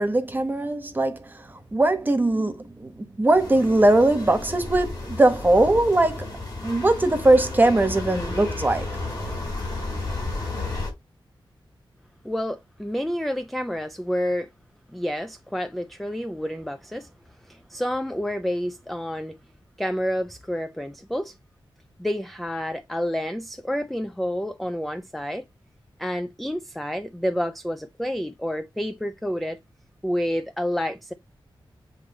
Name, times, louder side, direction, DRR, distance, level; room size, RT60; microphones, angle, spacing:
voice 1, 0.0-6.3 6.6-9.0, right 2 dB, 20° right, 1.1 m, -21 dB
sound 1, 3.3-10.9, left 2 dB, 45° left, 4.1 m, -32 dB
voice 2, 12.2-14.5 14.9-17.1 17.4-19.4 19.8-21.4 22.0-25.4 26.0-29.6 30.0-31.1, equal, ahead, 0.4 m, -29 dB
7.8 x 3.1 x 4.2 m
wide cardioid pair, 125°, 9 cm